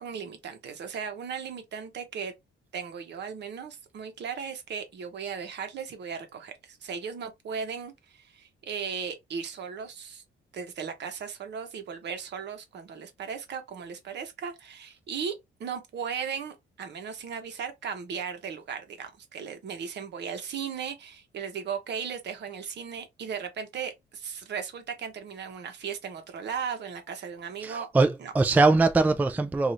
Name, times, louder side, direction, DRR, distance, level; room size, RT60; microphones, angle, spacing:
voice 1, 0.0-2.3 2.7-10.2 10.5-15.3 15.6-27.9 28.2-28.3, right 6 dB, 60° right, 0.8 m, -36 dB
voice 2, 27.6-29.7, right 3 dB, 10° right, 0.3 m, -22 dB
2.7 x 2.4 x 3.0 m
cardioid pair, 90°, 20 cm